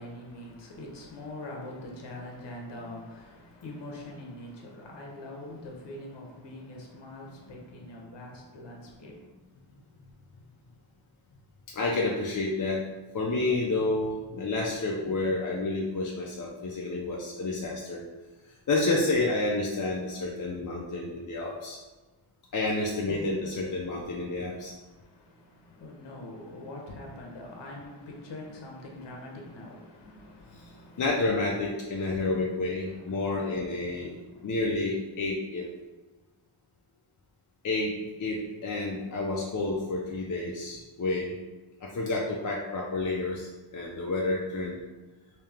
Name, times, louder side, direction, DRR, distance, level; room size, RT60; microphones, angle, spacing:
voice 1, 0.0-9.3 23.0-31.1 31.9-32.4 32.8-33.5 33.8-34.5, left 1 dB, 60° left, -1 dB, 0.9 m, -44 dB
voice 2, 11.7-12.8 13.1-18.0 18.7-21.8 22.5-24.7 30.5-30.6 31.0-34.2 34.4-35.7 37.6-37.9 38.2-41.4 41.8-44.8, left 2 dB, 40° left, -3 dB, 0.5 m, -29 dB
3.1 x 2.8 x 3.5 m, 1.2 s
wide cardioid pair, 130°, 48 cm